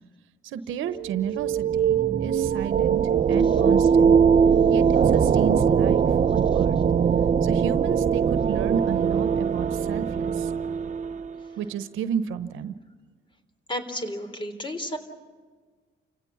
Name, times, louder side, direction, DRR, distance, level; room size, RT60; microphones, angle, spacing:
voice 1, 0.4-3.0 3.3-4.2 4.7-6.1 6.3-6.8 7.4-10.5 11.5-12.7, right 8 dB, 90° right, 12 dB, 1.0 m, -31 dB
sound 1, 0.9-11.5, right 7 dB, 40° right, 0.8 m, -21 dB
voice 2, 13.7-15.0, equal, 25° left, 9 dB, 3.6 m, -32 dB
29.5 x 17.0 x 7.2 m, 1.5 s
cardioid pair, 90°, 20 cm